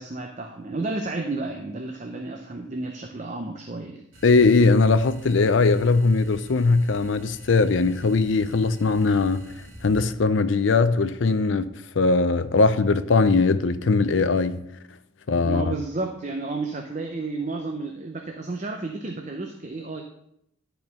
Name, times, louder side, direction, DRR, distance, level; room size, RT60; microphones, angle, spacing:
voice 1, 0.0-4.0 15.4-20.0, right 3 dB, 35° right, 0.6 m, -32 dB
sound 1, 4.1-10.2, equal, 75° right, 2.2 m, -46 dB
voice 2, 4.2-9.5 9.8-14.7 15.3-15.7, left 3 dB, 70° left, 0.5 m, -20 dB
10.5 x 4.5 x 5.3 m
head